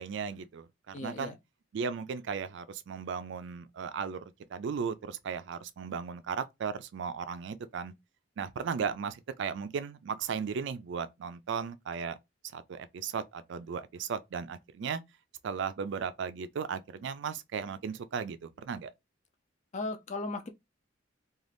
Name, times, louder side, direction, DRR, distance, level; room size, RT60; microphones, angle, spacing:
voice 1, 0.0-1.4 1.7-7.9 8.4-12.2 12.5-15.0 15.4-18.9, right 6 dB, 65° right, 0.3 m, -36 dB
voice 2, 0.9-1.4 19.7-20.5, left 2 dB, 35° left, 0.5 m, -36 dB
2.5 x 2.3 x 3.3 m
head